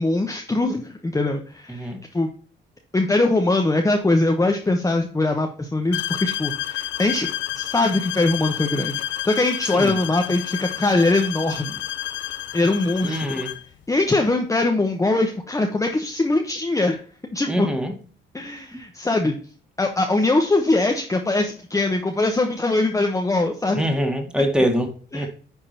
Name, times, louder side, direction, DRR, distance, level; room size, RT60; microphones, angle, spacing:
voice 1, 0.0-2.3 2.9-7.3 7.6-11.7 12.5-13.4 13.9-17.0 17.3-17.7 18.3-19.3 19.8-23.9 25.1-25.3, left 2 dB, 15° left, 1.0 m, -22 dB
voice 2, 1.7-2.0 9.7-10.0 13.0-13.5 17.5-18.0 18.7-18.8 23.7-25.3, equal, 5° right, 1.9 m, -24 dB
sound 1, 5.9-13.7, left 13 dB, 70° left, 0.6 m, -30 dB
10.0 x 3.8 x 4.3 m
cardioid pair, 90°, 20 cm